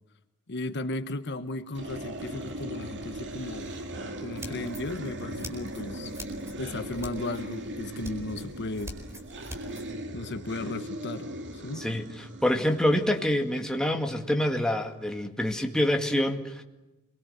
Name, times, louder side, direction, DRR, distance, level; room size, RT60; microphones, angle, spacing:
voice 1, 0.5-3.7 4.2-6.1 6.6-8.9 10.1-11.3 11.5-11.8, left 2 dB, 50° left, 10 dB, 1.2 m, -35 dB
sound 1, 1.7-14.7, right 1 dB, 55° right, 2.6 m, -39 dB
sound 2, 4.4-9.9, equal, 10° right, 4.5 m, -45 dB
voice 2, 11.8-16.6, left 1 dB, 5° left, 3 dB, 2.0 m, -26 dB
27.5 x 23.0 x 8.0 m, 1.0 s
head